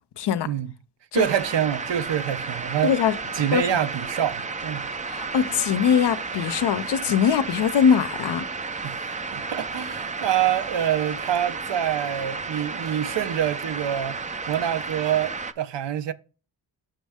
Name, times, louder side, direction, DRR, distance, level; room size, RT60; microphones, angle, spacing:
voice 1, 0.2-0.5 1.1-1.2 2.8-3.1 3.5-3.8 5.1-8.5, left 8 dB, 65° left, 0.6 m, -22 dB
sound 1, 1.1-15.5, right 4 dB, 20° right, 0.3 m, -32 dB
voice 2, 1.1-2.9 3.3-4.9 8.8-9.0 9.3-14.2 14.5-16.1, right 10 dB, 70° right, 0.6 m, -26 dB
6.2 x 5.8 x 3.5 m
cardioid pair, 80°, 45 cm